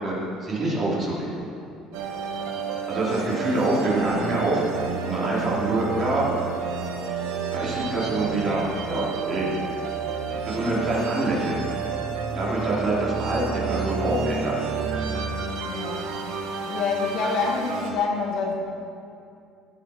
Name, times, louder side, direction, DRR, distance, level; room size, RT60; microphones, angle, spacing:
voice 1, 0.0-1.3 2.9-6.2 7.5-9.5 10.3-11.6 12.3-14.6, right 1 dB, 30° right, -6 dB, 3.3 m, -26 dB
sound 1, 1.9-17.9, right 5 dB, 90° right, 1.4 m, -30 dB
voice 2, 15.6-16.2 16.7-18.5, left 4 dB, 65° left, -1 dB, 1.9 m, -27 dB
15.5 x 6.0 x 5.8 m, 2.5 s
cardioid pair, 145°, 0 cm